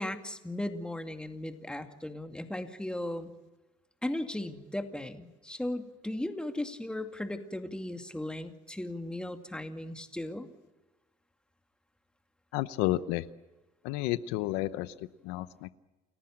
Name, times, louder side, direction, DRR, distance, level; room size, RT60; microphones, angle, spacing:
voice 1, 0.0-3.3 4.0-10.5, left 1 dB, 5° left, 6 dB, 2.3 m, -36 dB
voice 2, 12.5-13.2 13.8-15.7, left 16 dB, 90° left, 15 dB, 0.9 m, -31 dB
29.5 x 15.0 x 8.9 m, 1.1 s
cardioid pair, 95°, 17 cm